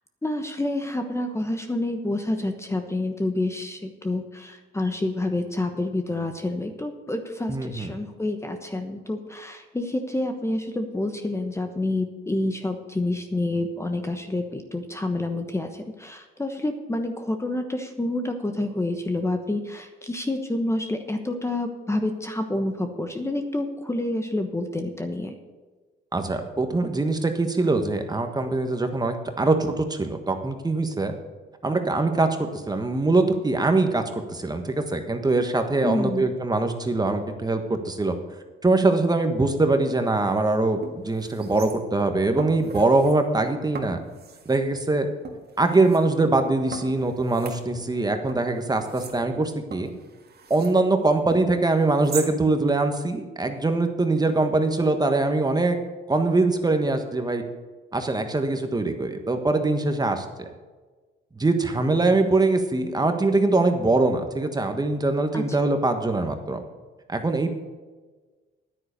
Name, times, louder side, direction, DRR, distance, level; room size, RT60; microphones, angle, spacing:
voice 1, 0.2-25.3 35.8-36.3 65.3-65.4, left 2 dB, 15° left, 5 dB, 1.1 m, -28 dB
voice 2, 7.5-7.9 26.1-31.1 31.6-38.1 38.6-44.0 44.4-45.1 45.6-49.9 50.5-55.8 56.1-57.4 57.9-60.5 61.4-66.6 67.1-67.6, right 2 dB, 20° right, 6 dB, 1.4 m, -23 dB
sound 1, 40.3-40.4 40.8-42.0 42.4-43.2 43.7-44.6 45.2-46.0 46.7-48.0 48.3-50.8 51.3-52.3 52.7-52.8, right 5 dB, 55° right, 1.9 m, -40 dB
10.0 x 9.5 x 6.8 m, 1.3 s
cardioid pair, 90°, 20 cm